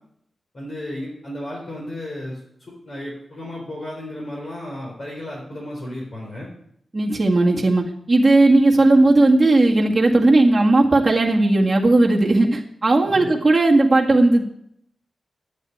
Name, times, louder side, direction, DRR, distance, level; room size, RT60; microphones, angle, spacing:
voice 1, 0.5-2.4 2.8-6.5 13.0-13.3, left 1 dB, 45° left, -4 dB, 4.1 m, -33 dB
voice 2, 6.9-14.4, right 2 dB, 20° right, -3 dB, 1.9 m, -16 dB
11.5 x 9.3 x 9.4 m, 0.72 s
wide cardioid pair, 145°, 0 cm